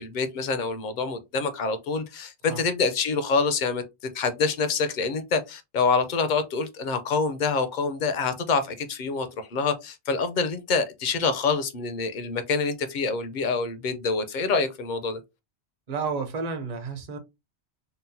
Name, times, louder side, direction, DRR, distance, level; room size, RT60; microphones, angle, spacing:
voice 1, 0.0-3.8 4.1-15.2, left 4 dB, 55° left, 0.6 m, -26 dB
voice 2, 15.9-17.2, right 4 dB, 45° right, 0.7 m, -31 dB
3.8 x 2.1 x 2.6 m
omnidirectional pair, 1.2 m